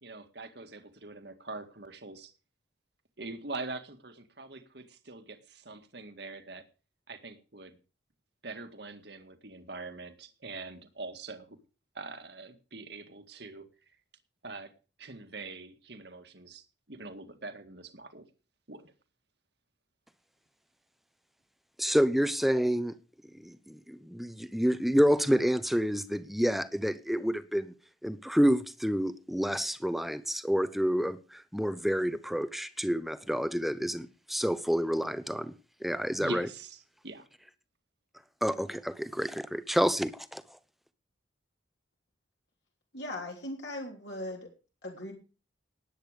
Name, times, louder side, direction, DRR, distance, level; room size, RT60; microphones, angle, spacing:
voice 1, 0.0-2.3 3.2-6.6 7.1-7.8 8.4-11.6 11.9-13.7 14.4-14.7 15.0-18.3 18.7-18.9 36.2-36.8 37.0-37.3, right 3 dB, 55° right, 2.0 m, -43 dB
voice 2, 21.8-23.0 23.3-27.7 28.0-35.5 35.8-36.5 38.4-40.4, equal, ahead, 0.8 m, -28 dB
voice 3, 42.9-44.5 44.8-45.1, left 1 dB, 60° left, 3.3 m, -39 dB
18.5 x 9.0 x 5.1 m
head